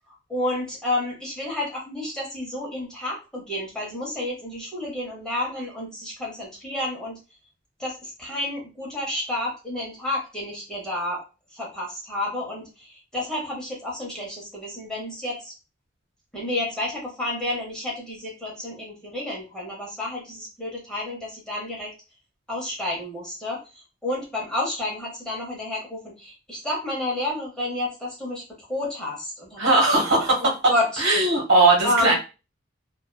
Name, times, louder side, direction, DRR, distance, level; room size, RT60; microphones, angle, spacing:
voice 1, 0.1-7.2 7.8-11.2 11.5-15.5 16.3-21.9 22.5-28.4 28.7-31.0 31.8-32.1, left 1 dB, 5° left, -4 dB, 0.8 m, -30 dB
voice 2, 29.6-30.4 31.0-32.1, right 2 dB, 65° right, -1 dB, 1.1 m, -18 dB
2.7 x 2.3 x 2.2 m, 0.30 s
head